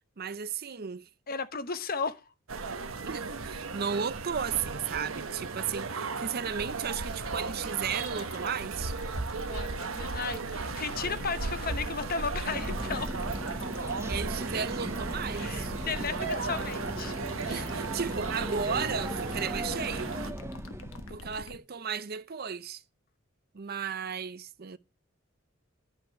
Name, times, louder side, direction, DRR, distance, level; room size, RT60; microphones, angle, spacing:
voice 1, 0.2-1.1 3.0-8.9 14.1-15.7 17.5-20.2 21.1-22.8 23.5-24.8, right 7 dB, 50° right, 0.6 m, -34 dB
voice 2, 1.3-2.2 9.5-13.1 15.3-17.2 17.4-17.6, left 5 dB, 45° left, 1.0 m, -35 dB
sound 1, 2.5-20.3, right 4 dB, 75° right, 1.1 m, -36 dB
sound 2, 5.8-21.6, left 2 dB, 80° left, 1.3 m, -46 dB
sound 3, 12.5-21.4, right 1 dB, 15° right, 0.8 m, -38 dB
11.0 x 5.3 x 7.7 m
head